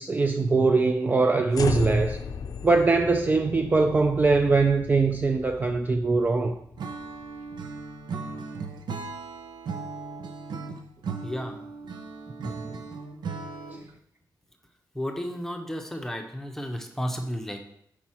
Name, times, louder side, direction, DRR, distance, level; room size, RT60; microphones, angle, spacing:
voice 1, 0.0-2.2 2.6-6.6 12.4-12.7, right 3 dB, 25° right, 5 dB, 0.4 m, -22 dB
sound 1, 1.5-7.8, left 5 dB, 55° left, 0.5 m, -37 dB
Acoustic guitar / Strum, 6.8-14.0, right 4 dB, 90° right, 0.7 m, -37 dB
voice 2, 11.2-11.6 14.9-17.6, equal, 5° left, 4 dB, 0.8 m, -32 dB
6.0 x 4.5 x 4.3 m, 0.71 s
wide cardioid pair, 135°, 7 cm